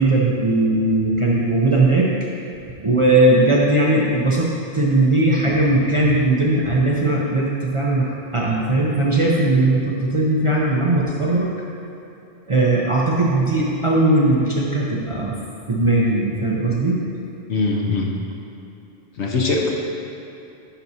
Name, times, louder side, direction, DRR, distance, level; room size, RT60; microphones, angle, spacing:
voice 1, 0.0-2.1 2.8-4.5 4.7-11.5 12.5-15.3 15.7-16.9, right 2 dB, 35° right, -5 dB, 0.6 m, -18 dB
voice 2, 17.5-18.1 19.2-19.7, left 3 dB, 70° left, -1 dB, 1.1 m, -21 dB
9.7 x 5.7 x 2.8 m, 2.7 s
omnidirectional pair, 1.2 m